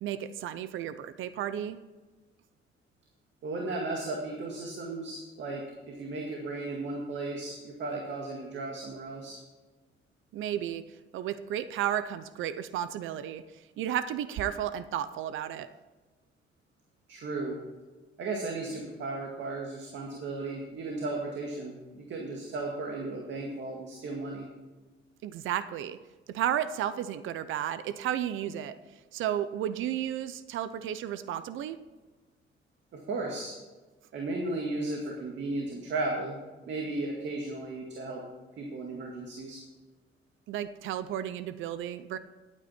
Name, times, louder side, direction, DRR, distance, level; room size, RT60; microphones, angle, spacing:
voice 1, 0.0-1.8 10.3-10.8 11.1-15.7 25.2-26.0 26.3-28.8 29.1-31.8 40.5-42.2, right 10 dB, 85° right, 13 dB, 0.6 m, -33 dB
voice 2, 3.4-9.4 17.1-17.6 18.2-24.5 32.9-33.6 34.1-36.4 36.7-38.2 38.6-39.6, right 2 dB, 70° right, 0 dB, 2.0 m, -35 dB
12.5 x 9.1 x 4.3 m, 1.2 s
cardioid pair, 90°, 20 cm